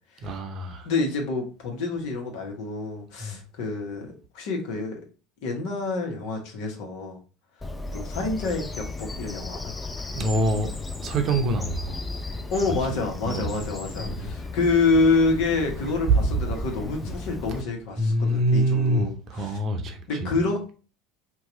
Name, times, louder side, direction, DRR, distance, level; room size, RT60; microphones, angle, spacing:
voice 1, 0.2-0.9 3.2-3.4 10.1-10.7 11.0-12.0 13.2-13.5 14.0-14.3 16.3-16.4 18.0-20.3, right 1 dB, 45° right, 0.7 m, -25 dB
voice 2, 0.8-5.0 5.4-7.2 7.9-9.7 12.5-19.6 20.1-20.8, left 3 dB, 65° left, 1.0 m, -27 dB
Bird vocalization bird call bird song, 7.6-17.6, left 3 dB, 15° left, 0.4 m, -35 dB
2.8 x 2.3 x 3.7 m
hypercardioid pair, 75°, 0 cm